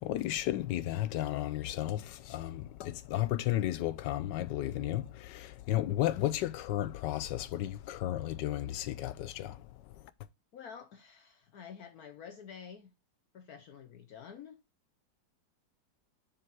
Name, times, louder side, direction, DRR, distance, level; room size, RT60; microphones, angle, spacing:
voice 1, 0.0-10.1, left 14 dB, 85° left, 1.3 m, -33 dB
voice 2, 10.5-12.9 13.3-14.6, left 7 dB, 65° left, 1.1 m, -49 dB
6.9 x 3.5 x 4.7 m
omnidirectional pair, 1.9 m